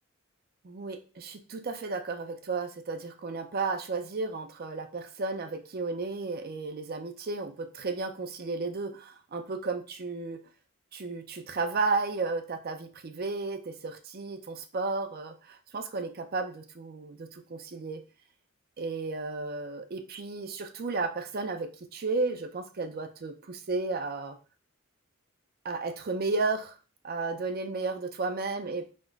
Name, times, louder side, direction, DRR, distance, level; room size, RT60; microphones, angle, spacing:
voice 1, 0.6-10.4 10.9-18.0 18.8-24.4 25.6-26.8 27.0-28.9, right 3 dB, 45° right, 7 dB, 0.5 m, -33 dB
4.3 x 2.2 x 4.5 m, 0.36 s
head